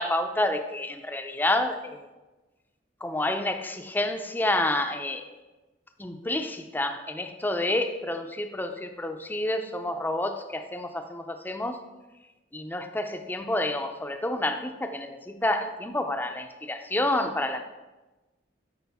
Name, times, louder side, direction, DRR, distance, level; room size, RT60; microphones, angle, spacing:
voice 1, 0.0-2.1 3.0-5.4 6.0-11.8 12.5-17.6, left 1 dB, 10° left, 7 dB, 0.5 m, -29 dB
12.0 x 5.1 x 3.5 m, 1.1 s
head